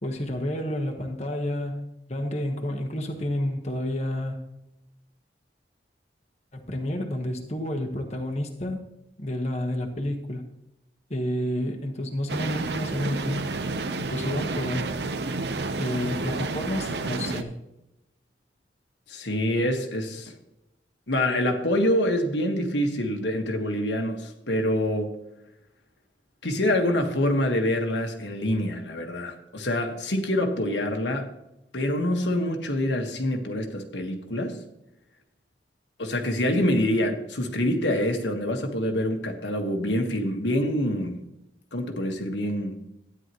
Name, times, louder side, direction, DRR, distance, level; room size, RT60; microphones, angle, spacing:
voice 1, 0.0-4.4 6.5-8.8 9.2-10.4 11.1-13.5 14.1-14.9 15.8-17.6, left 1 dB, 40° left, 3 dB, 1.3 m, -30 dB
sound 1, 12.3-17.4, right 3 dB, 70° right, 0.8 m, -30 dB
voice 2, 19.1-20.3 21.1-25.1 26.4-31.3 31.7-34.6 36.0-41.2 41.7-42.8, left 1 dB, 85° left, 3 dB, 1.5 m, -26 dB
12.5 x 9.9 x 3.1 m, 0.86 s
head